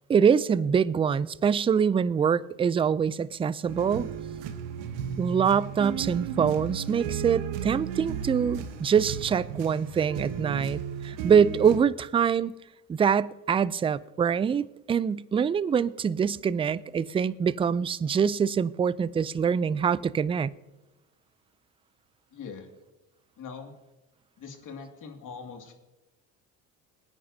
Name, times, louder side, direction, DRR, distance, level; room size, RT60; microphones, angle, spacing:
voice 1, 0.1-4.1 5.2-12.5 12.9-20.5, right 7 dB, 15° right, 0.3 m, -24 dB
sound 1, 3.7-11.8, right 8 dB, 90° right, 1.1 m, -34 dB
voice 2, 22.3-22.7 23.4-23.7 24.4-25.7, left 5 dB, 55° left, 2.3 m, -42 dB
19.5 x 9.6 x 2.7 m
supercardioid pair, 80°, 38 cm